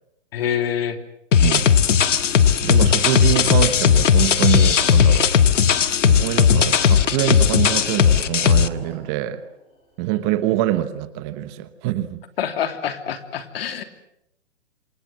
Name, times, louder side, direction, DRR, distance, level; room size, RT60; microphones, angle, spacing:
voice 1, 0.3-1.0 12.4-13.8, left 9 dB, 55° left, 9 dB, 3.3 m, -26 dB
sound 1, 1.3-8.7, left 7 dB, 80° left, 1.7 m, -16 dB
sound 2, 1.6-6.3 7.0-10.4, left 2 dB, 15° left, 6.2 m, -44 dB
voice 2, 2.6-9.4 10.0-12.2, right 14 dB, 25° right, 12 dB, 1.1 m, -25 dB
27.5 x 26.0 x 7.7 m, 0.82 s
hypercardioid pair, 155°, 37 cm